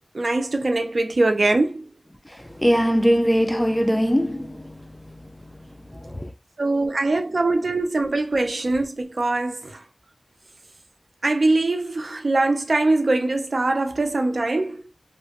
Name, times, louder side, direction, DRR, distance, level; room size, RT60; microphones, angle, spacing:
voice 1, 0.1-1.8 6.6-9.8 11.2-14.8, right 2 dB, 70° right, 0.5 m, -22 dB
voice 2, 2.2-6.3, equal, 10° left, 0.6 m, -23 dB
3.2 x 2.3 x 2.8 m
wide cardioid pair, 45°, 0 cm